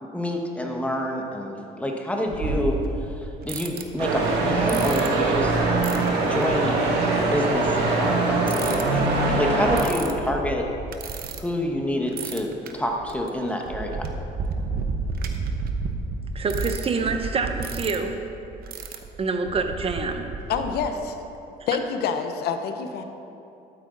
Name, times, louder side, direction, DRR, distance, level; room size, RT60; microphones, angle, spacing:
voice 1, 0.0-2.8 3.1-5.5 6.2-10.6 11.4-14.0, left 1 dB, 10° left, 1 dB, 1.2 m, -28 dB
sound 1, 2.3-6.5 7.4-7.6 8.4-11.8 12.1-20.9, right 4 dB, 60° right, 0.9 m, -32 dB
sound 2, 4.0-9.8, right 3 dB, 80° right, 1.9 m, -22 dB
voice 2, 16.3-18.2 19.2-20.3 21.6-21.7, right 4 dB, 35° right, 6 dB, 0.9 m, -26 dB
voice 3, 20.5-21.2 21.7-23.0, left 6 dB, 70° left, 7 dB, 0.9 m, -27 dB
12.0 x 8.9 x 4.0 m, 2.8 s
cardioid pair, 110°, 17 cm